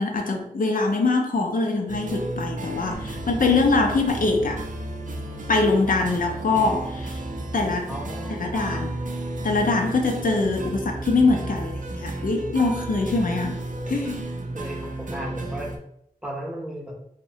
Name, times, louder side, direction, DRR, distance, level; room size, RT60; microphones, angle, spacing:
voice 1, 0.0-4.6 5.5-7.2 7.5-7.9 8.3-8.9 9.4-13.6 13.9-14.3, left 3 dB, 70° left, 2 dB, 0.4 m, -23 dB
sound 1, 1.9-15.8, right 2 dB, 60° right, 0.4 m, -34 dB
sound 2, 2.9-14.2, equal, 30° left, 0.6 m, -38 dB
voice 2, 7.9-8.4 14.5-15.7 16.2-16.9, equal, 5° right, -2 dB, 0.7 m, -34 dB
2.7 x 2.1 x 2.7 m, 0.73 s
wide cardioid pair, 55°, 15 cm